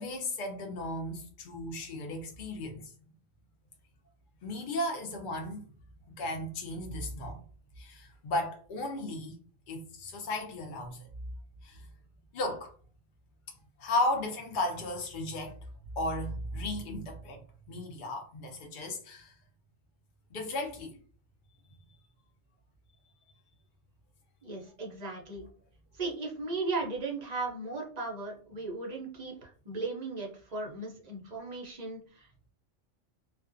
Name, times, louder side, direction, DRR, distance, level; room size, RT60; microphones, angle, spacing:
voice 1, 0.0-2.9 4.4-5.7 6.1-7.4 7.8-9.4 9.7-11.1 11.6-11.9 12.3-12.7 13.8-15.6 16.0-17.4 17.7-19.4 20.3-21.0, left 1 dB, 50° left, 0.7 m, -35 dB
voice 2, 24.4-25.4 25.9-32.5, right 3 dB, 45° right, 0.6 m, -37 dB
2.4 x 2.2 x 2.5 m
omnidirectional pair, 1.3 m